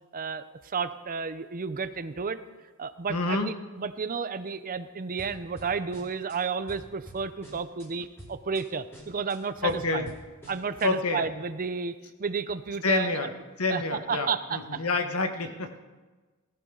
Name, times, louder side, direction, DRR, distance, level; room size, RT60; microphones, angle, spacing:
voice 1, 0.1-2.4 2.8-10.1 10.5-13.3 13.7-14.8, right 5 dB, 40° right, 12 dB, 0.6 m, -32 dB
voice 2, 3.1-3.5 9.6-10.1 10.8-11.2 12.8-13.3 13.6-15.8, left 3 dB, 75° left, 6 dB, 1.4 m, -28 dB
sound 1, 5.2-6.4 6.7-7.9 8.2-8.6 8.9-10.9, right 1 dB, 10° left, 4.3 m, -48 dB
18.5 x 14.0 x 3.9 m, 1.3 s
head